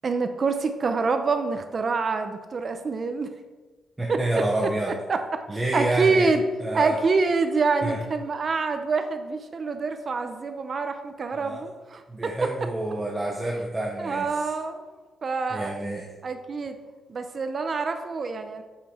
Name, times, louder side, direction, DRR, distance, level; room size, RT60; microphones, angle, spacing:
voice 1, 0.0-3.3 4.1-4.4 5.1-5.4 5.7-6.4 6.7-12.3 14.0-14.8 15.2-15.7 16.2-16.8 17.1-18.6, right 4 dB, 35° right, 7 dB, 0.6 m, -26 dB
voice 2, 4.0-4.9 5.5-6.3 6.6-6.9 7.8-8.0 11.3-11.6 12.1-14.5 15.5-16.1, right 1 dB, 10° right, -2 dB, 0.9 m, -28 dB
9.5 x 7.5 x 4.3 m, 1.3 s
wide cardioid pair, 175°, 0 cm